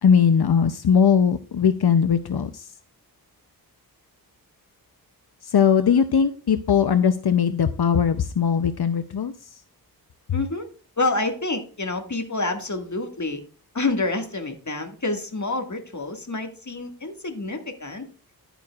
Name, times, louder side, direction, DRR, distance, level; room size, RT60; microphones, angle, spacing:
voice 1, 0.0-2.7 5.4-9.5, left 7 dB, 85° left, 10 dB, 0.6 m, -20 dB
voice 2, 5.7-6.0 10.3-10.7 11.0-13.4 13.7-18.0, left 2 dB, 50° left, 5 dB, 1.9 m, -28 dB
11.5 x 9.0 x 2.4 m, 0.39 s
wide cardioid pair, 50°, 37 cm